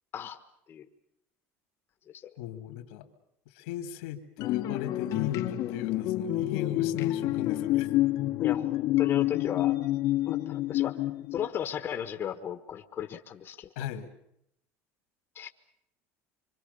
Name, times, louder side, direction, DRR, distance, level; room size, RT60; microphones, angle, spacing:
voice 1, 2.4-3.1 3.5-7.9 13.8-14.1, left 11 dB, 85° left, 7 dB, 2.8 m, -37 dB
sound 1, 4.4-11.5, left 15 dB, 55° left, 1.3 m, -28 dB
voice 2, 8.4-9.8 10.2-11.0 11.3-13.7 15.3-15.5, left 9 dB, 35° left, 7 dB, 1.4 m, -35 dB
25.5 x 25.0 x 6.9 m, 0.76 s
cardioid pair, 135°, 7 cm